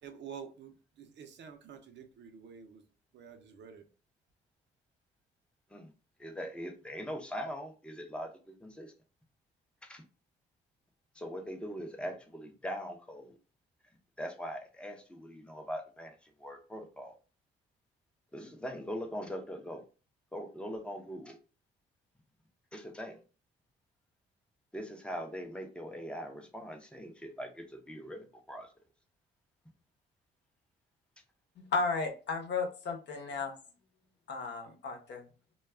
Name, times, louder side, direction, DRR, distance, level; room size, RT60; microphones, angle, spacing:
voice 1, 0.0-2.8 3.1-3.8, right 7 dB, 65° right, 6 dB, 0.7 m, -49 dB
voice 2, 6.2-8.9 9.8-10.0 11.1-13.4 14.2-17.2 18.3-19.8 20.3-21.4 22.7-23.2 24.7-28.7, equal, 5° left, 4 dB, 0.6 m, -41 dB
voice 3, 31.6-33.5 34.3-35.2, left 4 dB, 60° left, 4 dB, 0.8 m, -34 dB
2.3 x 2.2 x 3.3 m, 0.35 s
cardioid pair, 90°, 20 cm